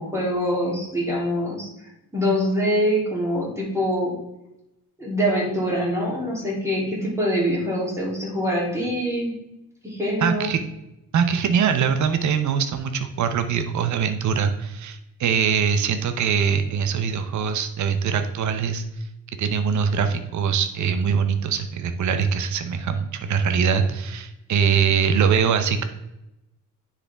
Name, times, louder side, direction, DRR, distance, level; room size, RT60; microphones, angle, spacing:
voice 1, 0.0-1.7 2.1-4.2 5.0-9.3 9.8-10.5, equal, 10° right, -4 dB, 3.1 m, -24 dB
voice 2, 10.2-10.6 11.1-18.8 19.4-25.8, right 6 dB, 55° right, 8 dB, 0.8 m, -22 dB
9.9 x 4.9 x 3.5 m, 0.89 s
cardioid pair, 125°, 35 cm